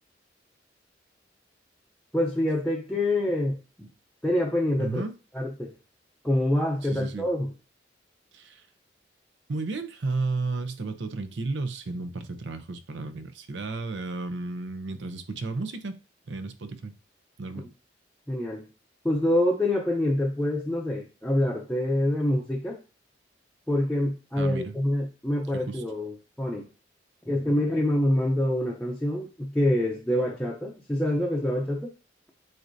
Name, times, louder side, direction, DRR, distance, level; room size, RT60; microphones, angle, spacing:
voice 1, 2.1-3.9 4.2-5.0 5.3-5.7 6.2-7.5 18.3-18.7 19.0-22.8 23.7-26.7 27.3-31.9, left 1 dB, 5° left, 0.6 m, -26 dB
voice 2, 4.8-5.1 6.9-7.3 8.3-8.6 9.5-16.0 16.3-16.9 17.4-17.7 24.4-24.8 25.5-25.8, right 3 dB, 75° right, 0.7 m, -33 dB
7.5 x 2.6 x 2.7 m
head